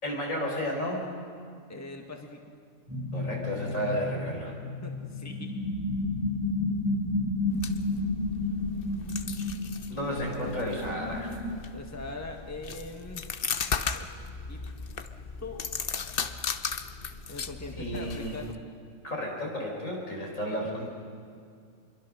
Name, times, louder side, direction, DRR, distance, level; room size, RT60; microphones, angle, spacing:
voice 1, 0.0-1.2 3.1-4.6 9.9-11.3 17.8-18.4 19.0-20.9, equal, 75° left, -1 dB, 5.4 m, -32 dB
voice 2, 1.7-2.5 4.8-5.6 11.7-13.2 13.9-14.1 14.5-14.6 15.4-15.7 17.3-18.6, left 2 dB, 10° left, 2 dB, 1.7 m, -41 dB
sound 1, 2.9-11.5, left 2 dB, 15° right, 2.7 m, -32 dB
sound 2, 7.5-18.6, left 6 dB, 45° left, 1.0 m, -37 dB
26.5 x 23.0 x 6.4 m, 2.3 s
omnidirectional pair, 1.4 m